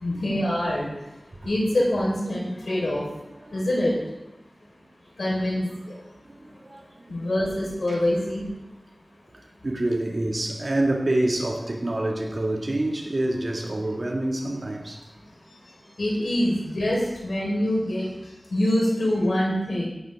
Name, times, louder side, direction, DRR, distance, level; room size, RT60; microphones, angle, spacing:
voice 1, 0.0-0.9 1.4-3.0 3.5-3.9 5.2-6.0 7.1-8.5 16.0-18.1 18.5-19.9, left 1 dB, 90° left, 4.3 m, -25 dB
voice 2, 6.2-7.2 7.9-8.0 9.3-15.0, right 1 dB, 50° right, 1.9 m, -27 dB
16.0 x 11.0 x 3.6 m
wide cardioid pair, 70°, 0 cm